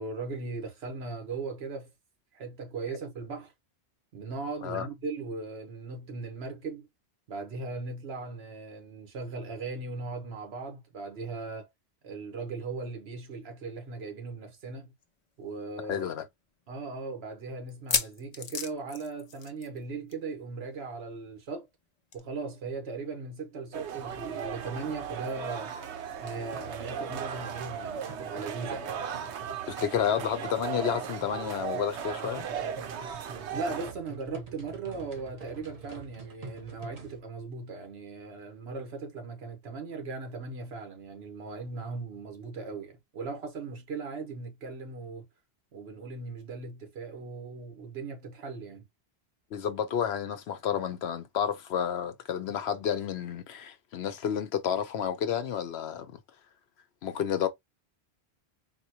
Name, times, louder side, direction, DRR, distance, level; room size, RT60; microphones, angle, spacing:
voice 1, 0.0-1.9 2.3-3.5 4.1-6.9 7.3-11.7 12.0-14.9 15.4-16.1 16.7-21.7 22.1-25.8 26.2-28.9 33.5-45.3 45.7-48.9, right 4 dB, 70° right, 1.3 m, -38 dB
sound 1, 15.0-15.1 15.4-15.5 16.1-16.2 17.7-19.8 20.1-20.3 20.6-20.7 22.1-22.2, left 6 dB, 45° left, 0.6 m, -33 dB
voice 2, 15.9-16.2 29.7-32.5 49.5-56.2 57.0-57.5, left 8 dB, 75° left, 0.9 m, -30 dB
sound 2, 23.7-33.9, right 7 dB, 90° right, 1.0 m, -37 dB
sound 3, 26.3-37.2, right 4 dB, 40° right, 0.9 m, -47 dB
4.2 x 2.2 x 2.8 m
omnidirectional pair, 1.1 m